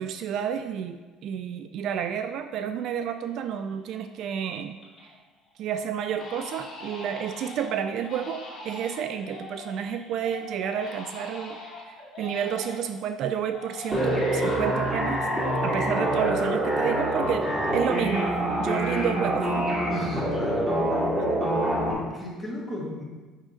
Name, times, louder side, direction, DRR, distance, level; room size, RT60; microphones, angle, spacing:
voice 1, 0.0-4.8 5.6-15.3 15.6-18.3 18.6-19.7, right 8 dB, 60° right, 9 dB, 0.4 m, -30 dB
Crying sobbing, 3.5-3.9 4.3-5.2 5.5-5.6 6.1-13.0 13.5-16.8 17.1-18.6 18.8-19.4, left 2 dB, 35° left, 2.3 m, -43 dB
sound 1, 13.9-21.9, right 1 dB, 15° right, 2.4 m, -25 dB
voice 2, 19.9-20.7 22.0-23.0, left 1 dB, 5° left, -4 dB, 2.0 m, -35 dB
6.4 x 6.1 x 3.9 m, 1.3 s
cardioid pair, 110°, 0 cm